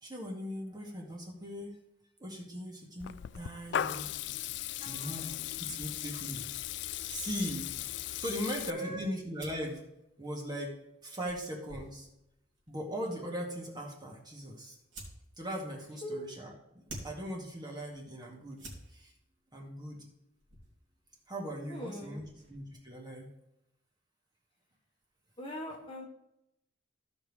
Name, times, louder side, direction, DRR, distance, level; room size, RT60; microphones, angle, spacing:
voice 1, 0.0-1.7 2.2-4.1 4.9-6.5 7.1-7.7 8.2-9.8 10.2-10.8 11.0-12.1 12.7-14.8 15.4-19.1 19.5-20.1 21.3-23.3, equal, 25° right, -2 dB, 2.0 m, -39 dB
Water tap faucet / Liquid, 3.0-8.7, left 11 dB, 65° left, 0.3 m, -37 dB
voice 2, 4.8-5.4 8.7-9.1 16.0-16.3 21.7-22.2 25.4-26.1, equal, 30° left, 0 dB, 1.4 m, -41 dB
sound 1, 9.3-22.9, right 1 dB, 80° right, 2.8 m, -55 dB
15.0 x 5.3 x 3.3 m, 0.85 s
head